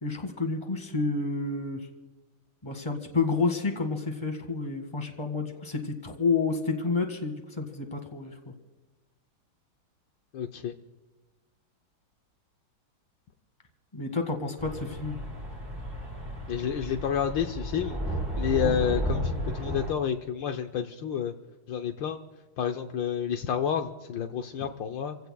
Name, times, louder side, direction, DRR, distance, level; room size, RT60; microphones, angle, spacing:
voice 1, 0.0-1.9 2.6-8.5 13.9-15.2, left 4 dB, 15° left, 4 dB, 1.8 m, -30 dB
voice 2, 10.3-10.7 16.5-18.0 18.4-21.3 21.7-22.2 22.6-25.2, left 8 dB, 70° left, 6 dB, 1.4 m, -30 dB
sound 1, 14.6-19.9, equal, 10° right, 2.9 m, -33 dB
29.0 x 16.0 x 2.3 m, 1.2 s
omnidirectional pair, 2.2 m